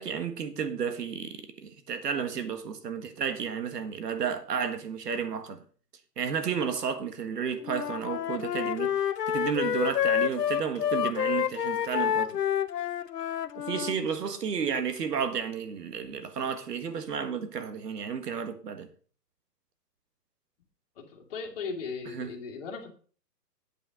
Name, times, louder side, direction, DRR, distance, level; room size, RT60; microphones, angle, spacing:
voice 1, 0.0-5.6 6.2-9.0 9.3-12.3 13.5-18.9 22.1-22.3, right 7 dB, 75° right, 1.7 m, -32 dB
Wind instrument woodwind instrument, 7.6-14.0, left 9 dB, 75° left, 0.8 m, -28 dB
voice 2, 21.0-22.9, left 5 dB, 35° left, 2.1 m, -37 dB
8.8 x 8.5 x 5.0 m
hypercardioid pair, 175°, 49 cm